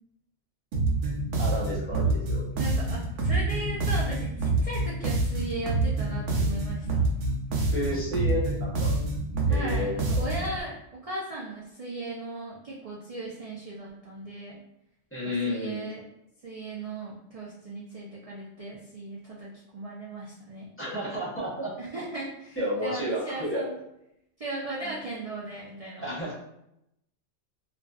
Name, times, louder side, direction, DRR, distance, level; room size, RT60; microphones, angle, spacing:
sound 1, 0.7-10.6, right 2 dB, 85° right, 0.9 m, -27 dB
voice 1, 1.4-2.5 7.7-8.9 9.5-10.5 15.1-16.0 20.8-21.7 22.6-23.6 24.8-25.0 26.0-26.3, equal, 15° left, -6 dB, 0.6 m, -32 dB
voice 2, 2.6-7.0 9.4-14.6 15.2-16.0 16.4-20.7 21.8-23.7 24.4-26.1, right 2 dB, 60° right, -6 dB, 0.3 m, -37 dB
2.5 x 2.2 x 2.3 m, 0.81 s
omnidirectional pair, 1.2 m